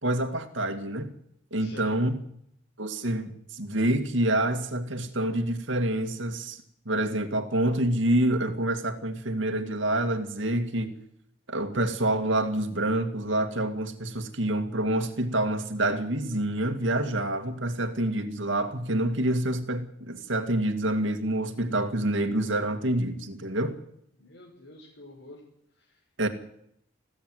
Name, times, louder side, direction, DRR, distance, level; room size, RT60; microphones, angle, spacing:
voice 1, 0.0-1.1 1.5-2.2 2.8-6.6 6.9-10.9 11.5-23.8 26.2-26.3, right 1 dB, 70° right, 2.3 m, -27 dB
voice 2, 1.6-2.0 24.2-25.4 25.8-26.0, left 2 dB, 75° left, 6.4 m, -47 dB
21.5 x 16.5 x 8.2 m
head